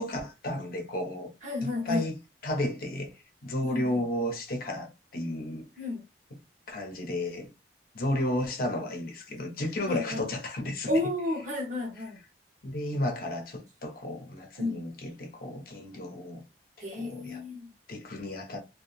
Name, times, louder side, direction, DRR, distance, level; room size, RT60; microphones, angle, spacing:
voice 1, 0.0-1.3 1.6-2.1 2.4-3.1 3.4-5.7 6.3-6.4 6.7-7.5 7.9-10.9 12.6-16.4 16.9-17.4 17.9-18.6, left 1 dB, 55° left, 0.7 m, -33 dB
voice 2, 1.4-2.1 3.6-4.0 5.8-6.1 9.9-10.2 10.9-12.2 14.6-14.8 16.8-17.7, left 2 dB, 45° right, 1.0 m, -32 dB
2.8 x 2.2 x 2.5 m
head